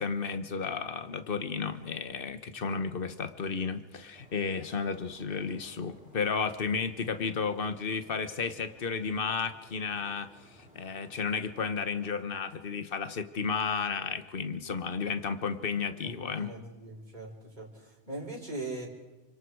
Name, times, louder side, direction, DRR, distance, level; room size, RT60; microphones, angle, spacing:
voice 1, 0.0-10.3 10.6-16.5, left 5 dB, 50° left, 10 dB, 1.4 m, -33 dB
sound 1, 4.1-12.0, equal, 5° right, 5.4 m, -58 dB
voice 2, 16.0-18.9, right 2 dB, 40° right, -2 dB, 4.8 m, -41 dB
28.5 x 25.0 x 4.8 m, 1.1 s
omnidirectional pair, 1.2 m